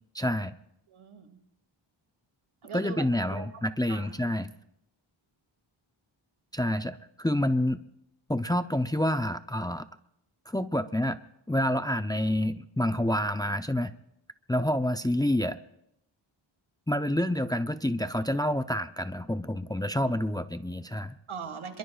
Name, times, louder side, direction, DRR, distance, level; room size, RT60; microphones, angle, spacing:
voice 1, 0.1-0.5 2.7-4.5 6.5-7.8 8.3-9.8 10.5-11.2 11.5-13.9 14.5-15.6 16.9-21.2, left 1 dB, 10° left, 9 dB, 0.6 m, -28 dB
voice 2, 0.9-1.4 2.6-3.5 3.9-4.1 21.3-21.8, right 5 dB, 85° right, 5 dB, 2.2 m, -40 dB
27.0 x 22.5 x 2.4 m, 0.79 s
wide cardioid pair, 80°, 48 cm